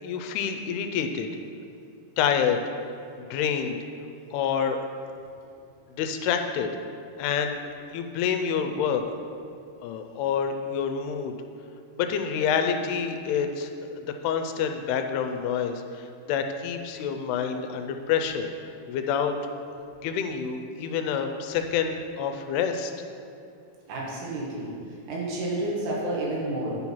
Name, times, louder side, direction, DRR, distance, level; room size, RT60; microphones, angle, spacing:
voice 1, 0.0-1.3 2.2-2.6 3.2-3.8 4.3-4.8 6.0-6.7 7.2-7.6 7.9-9.0 9.8-11.3 12.0-13.7 14.0-19.7 20.0-22.9, left 7 dB, 85° left, 6 dB, 2.6 m, -27 dB
voice 2, 23.9-24.7 25.1-26.7, right 1 dB, 85° right, -5 dB, 3.8 m, -30 dB
10.0 x 5.6 x 4.5 m, 2.5 s
omnidirectional pair, 4.6 m